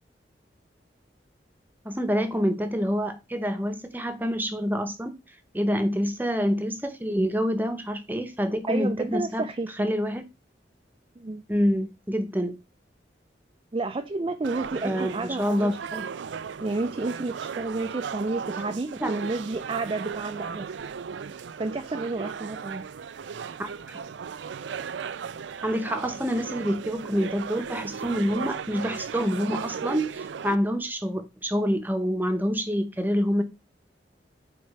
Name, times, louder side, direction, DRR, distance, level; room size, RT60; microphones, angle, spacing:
voice 1, 1.8-5.2 5.5-9.4 9.8-10.2 11.5-12.6 14.8-15.7 19.0-19.1 23.6-24.0 25.6-33.4, equal, 10° right, 0.9 m, -27 dB
voice 2, 8.7-9.9 11.2-11.4 13.7-16.1 16.6-20.7 21.6-22.9, right 3 dB, 30° right, 0.4 m, -31 dB
sound 1, 14.4-30.6, right 6 dB, 90° right, 0.4 m, -36 dB
4.9 x 4.4 x 5.4 m
head